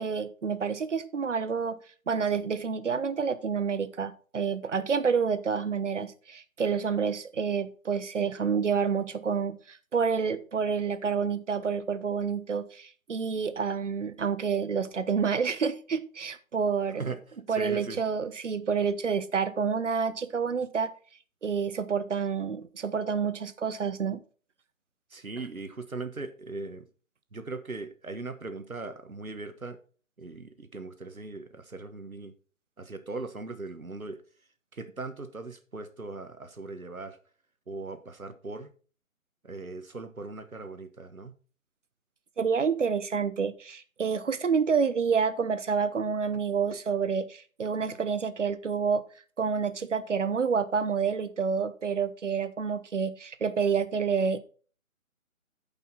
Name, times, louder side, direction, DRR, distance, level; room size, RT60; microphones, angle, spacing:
voice 1, 0.0-1.8 2.1-17.1 17.5-20.9 21.4-24.2 42.4-49.0 49.4-54.4, right 6 dB, 60° right, 1.0 m, -28 dB
voice 2, 17.5-18.0 25.1-26.9 27.3-29.8 30.2-32.3 32.8-34.2 34.7-37.2 37.7-38.7 39.4-41.3, right 3 dB, 85° right, 1.4 m, -39 dB
11.0 x 5.6 x 4.2 m
figure-of-eight pair, 145°, 41 cm